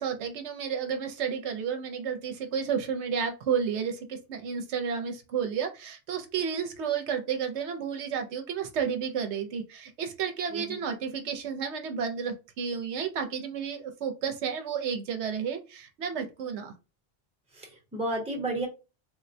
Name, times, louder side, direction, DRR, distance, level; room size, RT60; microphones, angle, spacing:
voice 1, 0.0-16.7, right 7 dB, 75° right, 5 dB, 0.8 m, -31 dB
voice 2, 10.5-10.8 17.5-18.7, right 1 dB, 5° right, 1 dB, 0.7 m, -32 dB
3.7 x 2.1 x 2.6 m, 0.30 s
omnidirectional pair, 1.2 m